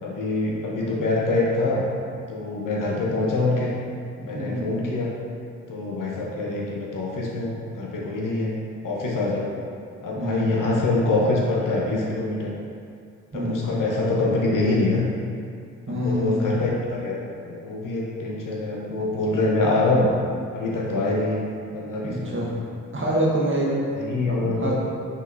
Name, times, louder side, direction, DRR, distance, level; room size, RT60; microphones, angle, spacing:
voice 1, 0.0-1.9 2.3-3.7 4.2-5.1 5.7-8.5 8.8-9.5 10.0-12.5 13.3-15.0 15.9-20.1 20.5-21.4 21.7-22.6 23.9-24.7, left 2 dB, 60° left, -3 dB, 0.9 m, -25 dB
voice 2, 4.2-4.8 10.1-10.6 13.3-13.7 15.9-16.5 22.0-22.5 22.9-23.8 24.3-24.7, equal, 35° right, -5 dB, 1.2 m, -26 dB
5.6 x 3.0 x 2.6 m, 2.4 s
hypercardioid pair, 45°, 35 cm